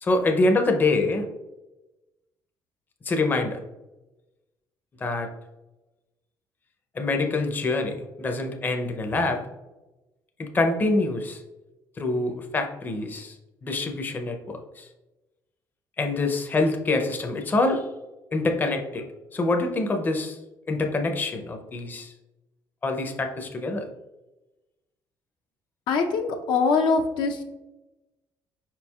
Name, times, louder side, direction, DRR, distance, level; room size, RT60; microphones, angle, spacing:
voice 1, 0.0-1.3 3.0-3.6 5.0-5.3 6.9-9.4 10.4-11.4 12.0-13.3 13.6-14.9 16.0-17.9 18.3-19.1 19.3-20.4 20.7-22.1 22.8-23.9, left 2 dB, 25° left, 4 dB, 0.5 m, -25 dB
voice 2, 25.9-27.4, left 4 dB, 75° left, 4 dB, 0.6 m, -23 dB
4.8 x 4.5 x 2.3 m, 1.0 s
cardioid pair, 120°, 8 cm